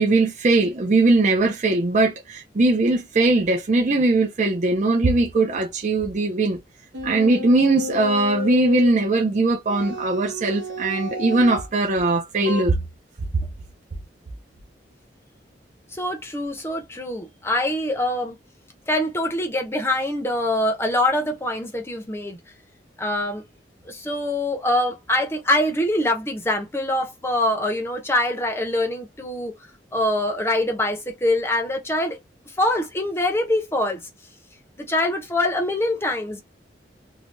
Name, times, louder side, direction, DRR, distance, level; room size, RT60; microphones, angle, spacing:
voice 1, 0.0-6.6 7.0-12.8, right 2 dB, 40° right, 0.5 m, -20 dB
sound 1, 6.9-9.0 9.7-11.7 12.5-12.6, left 2 dB, 80° right, 0.7 m, -31 dB
voice 2, 15.9-18.4 18.9-22.4 23.0-23.4 23.9-29.5 29.9-32.2 32.6-34.0 34.8-36.4, left 1 dB, 15° left, 0.6 m, -24 dB
3.2 x 2.2 x 2.5 m
head